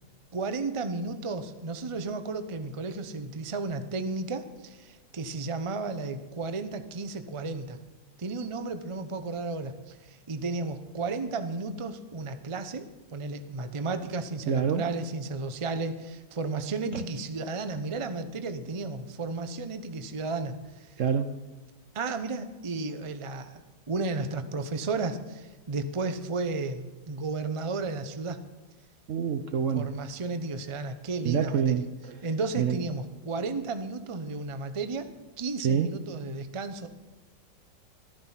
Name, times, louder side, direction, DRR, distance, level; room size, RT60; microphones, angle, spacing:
voice 1, 0.3-7.8 8.2-20.9 21.9-28.4 29.7-31.8 32.2-35.1 35.4-36.9, right 3 dB, 35° right, 9 dB, 0.5 m, -33 dB
voice 2, 14.5-14.9 16.9-17.0 21.0-21.4 29.1-29.9 31.2-32.2 32.6-32.8 35.6-35.9, right 7 dB, 60° right, 8 dB, 0.8 m, -26 dB
15.0 x 13.0 x 5.7 m, 1.2 s
omnidirectional pair, 1.9 m